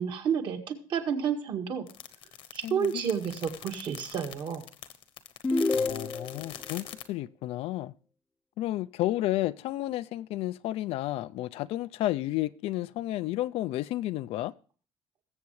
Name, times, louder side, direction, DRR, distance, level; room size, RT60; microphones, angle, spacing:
voice 1, 0.0-1.8 2.5-4.6, right 7 dB, 55° right, 1.8 m, -30 dB
sound 1, 1.9-7.1, left 10 dB, 65° left, 1.1 m, -43 dB
voice 2, 2.6-3.0 5.8-7.9 8.6-14.5, left 15 dB, 80° left, 0.5 m, -32 dB
sound 2, 5.4-6.5, left 3 dB, 15° left, 0.4 m, -28 dB
21.0 x 7.7 x 3.1 m
cardioid pair, 170°, 10 cm